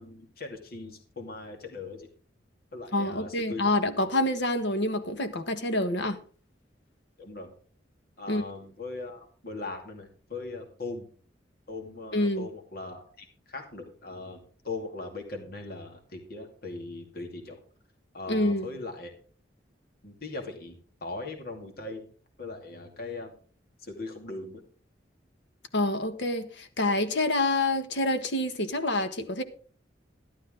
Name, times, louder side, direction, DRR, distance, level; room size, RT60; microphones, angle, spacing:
voice 1, 0.0-2.1 2.7-3.6 7.2-7.5 8.2-11.1 11.7-17.6 18.1-19.1 20.0-22.1 22.4-23.3 23.8-24.6, left 3 dB, 55° left, 2.5 m, -39 dB
voice 2, 2.9-6.2 8.3-8.4 12.1-12.5 18.3-18.7 25.7-29.4, left 1 dB, 70° left, 1.4 m, -27 dB
12.0 x 12.0 x 3.8 m
head